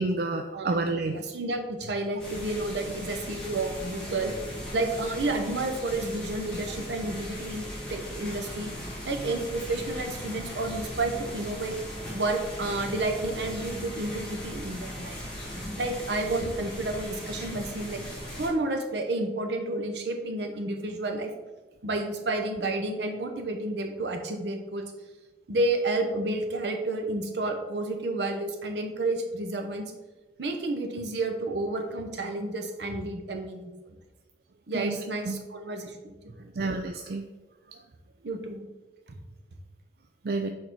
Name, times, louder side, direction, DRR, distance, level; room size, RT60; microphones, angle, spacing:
voice 1, 0.0-1.1 34.7-35.0 35.3-35.4 36.6-37.2 40.2-40.5, right 3 dB, 55° right, 5 dB, 0.4 m, -29 dB
voice 2, 0.5-4.3 4.7-8.7 9.0-11.8 12.1-15.2 15.7-18.0 18.4-21.3 21.8-24.8 25.5-29.9 30.4-33.7 34.7-36.5 38.2-38.7, right 2 dB, 75° right, 4 dB, 0.9 m, -31 dB
sound 1, 2.2-18.5, equal, 5° left, 2.0 m, -38 dB
6.4 x 4.2 x 4.6 m, 1.2 s
head